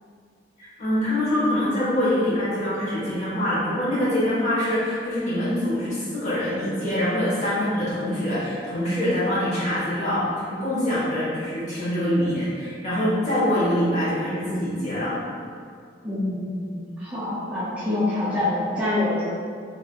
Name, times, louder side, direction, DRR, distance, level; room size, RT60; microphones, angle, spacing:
voice 1, 0.6-15.2, left 1 dB, 40° left, -10 dB, 1.1 m, -24 dB
voice 2, 16.0-19.2, left 2 dB, 5° right, -11 dB, 0.4 m, -26 dB
3.3 x 2.8 x 2.2 m, 2.2 s
head